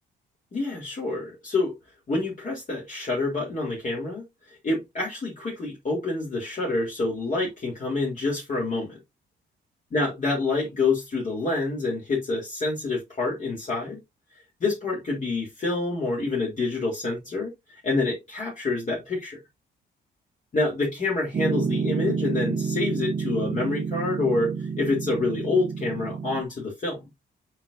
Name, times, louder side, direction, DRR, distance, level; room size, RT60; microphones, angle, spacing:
voice 1, 0.5-1.7 2.1-4.2 4.6-9.0 9.9-14.0 14.6-17.5 17.8-19.4 20.5-27.0, left 3 dB, 40° left, 3.5 m, -27 dB
Piano, 21.3-26.4, right 5 dB, 35° right, 0.8 m, -29 dB
7.2 x 5.1 x 2.7 m
cardioid pair, 90°, 20 cm